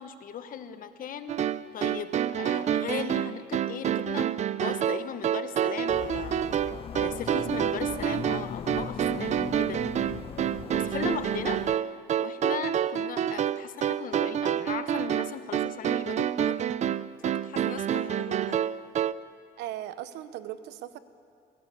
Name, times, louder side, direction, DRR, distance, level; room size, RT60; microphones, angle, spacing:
voice 1, 0.0-1.4 1.7-4.3 4.6-6.4 6.9-9.8 10.7-11.6 12.2-16.6 17.2-18.6, left 8 dB, 55° left, 10 dB, 1.3 m, -38 dB
sound 1, 1.3-19.1, right 10 dB, 45° right, 0.5 m, -28 dB
sound 2, 5.9-11.8, left 8 dB, 35° left, 0.5 m, -39 dB
voice 2, 19.6-21.0, right 12 dB, 85° right, 13 dB, 1.0 m, -38 dB
21.0 x 16.5 x 8.4 m, 2.4 s
cardioid pair, 110°, 17 cm